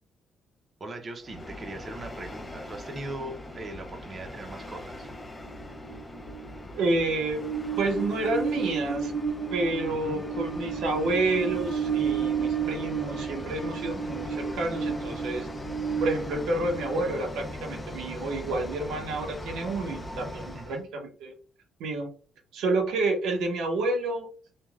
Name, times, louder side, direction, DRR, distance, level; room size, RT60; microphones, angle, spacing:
voice 1, 0.8-5.1 9.9-10.2 20.5-20.9, right 2 dB, 35° right, 4 dB, 0.5 m, -40 dB
Train, 1.3-20.8, right 4 dB, 15° left, 0.4 m, -34 dB
voice 2, 6.7-7.5 7.8-9.1 9.5-15.5 16.0-21.3 21.8-22.1 22.5-24.3, right 2 dB, 85° right, 2 dB, 0.6 m, -29 dB
3.2 x 2.1 x 2.3 m, 0.41 s
cardioid pair, 90°, 0 cm